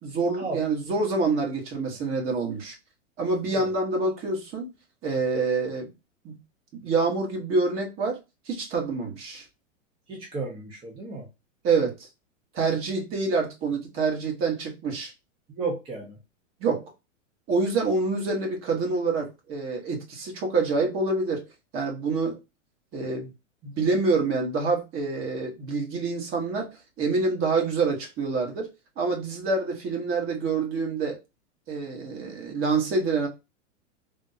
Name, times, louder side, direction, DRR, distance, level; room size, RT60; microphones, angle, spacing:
voice 1, 0.0-2.7 3.2-4.7 5.0-5.9 6.2-6.4 6.7-8.2 8.5-9.4 11.6-12.1 12.5-15.1 16.6-16.8 17.5-21.4 21.7-22.4 22.9-23.3 23.6-26.7 27.0-28.7 29.0-31.2 31.7-33.3, right 3 dB, 35° right, 1.2 m, -26 dB
voice 2, 10.1-11.3 15.5-16.2, right 3 dB, 15° right, 0.5 m, -33 dB
3.4 x 2.1 x 2.6 m
hypercardioid pair, 130°, 39 cm